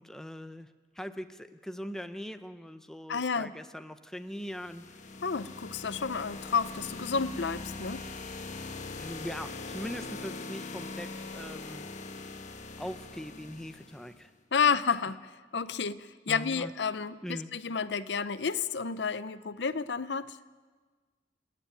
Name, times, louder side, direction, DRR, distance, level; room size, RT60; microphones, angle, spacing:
voice 1, 0.0-5.0 9.0-11.9 12.8-14.3 16.3-16.7 17.2-17.5, equal, 5° left, 9 dB, 0.7 m, -41 dB
voice 2, 3.1-3.5 5.2-8.1 14.5-20.4, left 6 dB, 65° left, 14 dB, 0.6 m, -31 dB
sound 1, 4.3-14.2, left 3 dB, 40° left, 1.3 m, -42 dB
29.0 x 9.9 x 9.2 m, 1.4 s
head